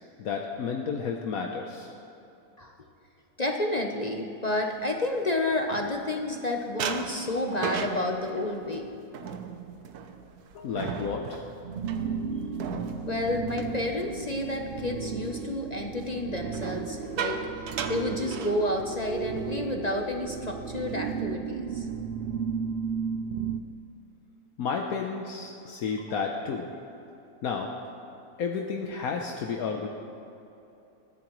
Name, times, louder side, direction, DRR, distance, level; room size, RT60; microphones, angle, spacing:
voice 1, 0.2-1.9 10.5-11.4 24.6-26.8 27.4-27.7 28.4-29.9, left 5 dB, 70° left, 2 dB, 1.3 m, -32 dB
voice 2, 3.4-8.9 13.0-17.4 17.9-21.9, left 1 dB, 35° left, 2 dB, 0.8 m, -30 dB
sound 1, 4.9-6.3 6.8-14.6 15.0-15.3 16.5-19.1 19.4-19.6 19.9-20.2 20.6-21.3, right 6 dB, 85° right, 1.4 m, -37 dB
sound 2, 11.6-23.6, right 6 dB, 60° right, 0.6 m, -34 dB
21.0 x 14.5 x 3.1 m, 2.9 s
omnidirectional pair, 1.6 m